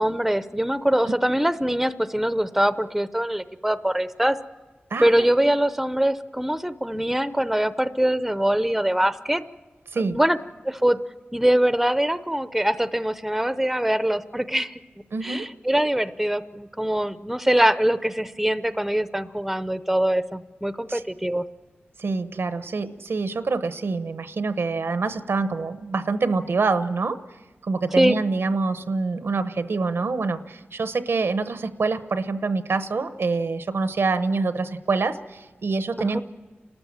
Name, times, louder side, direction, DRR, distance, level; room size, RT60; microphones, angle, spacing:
voice 1, 0.0-4.4 5.0-9.4 10.0-10.4 10.6-11.0 11.3-14.8 15.2-21.4 28.0-28.2 36.0-36.2, right 1 dB, 5° right, 13 dB, 0.6 m, -23 dB
voice 2, 15.1-15.5 20.9-21.0 22.0-27.2 27.6-36.2, right 4 dB, 85° right, 11 dB, 0.9 m, -26 dB
29.5 x 13.5 x 7.4 m, 1.3 s
wide cardioid pair, 75°, 4 cm